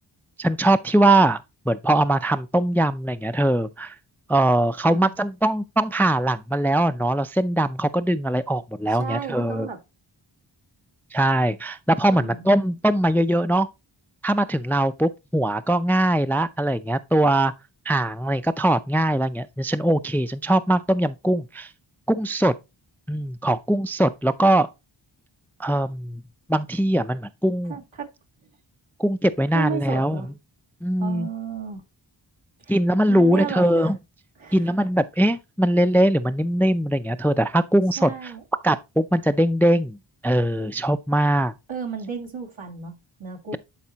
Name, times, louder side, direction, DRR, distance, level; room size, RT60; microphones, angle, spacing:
voice 1, 0.4-4.0 4.3-9.7 11.1-13.7 14.2-17.5 17.9-21.7 22.1-22.5 23.1-24.7 25.6-26.2 26.5-27.7 29.0-30.2 30.8-31.3 32.7-34.0 34.5-38.3 38.6-40.0 40.2-41.5, right 1 dB, 5° left, 0.3 m, -21 dB
voice 2, 8.9-9.8 12.1-12.5 27.7-28.1 29.5-30.3 31.0-31.8 32.6-32.8 33.1-34.0 34.4-34.7 38.0-38.4 41.7-43.6, right 6 dB, 75° right, 1.8 m, -33 dB
10.5 x 4.2 x 2.8 m
wide cardioid pair, 45°, 47 cm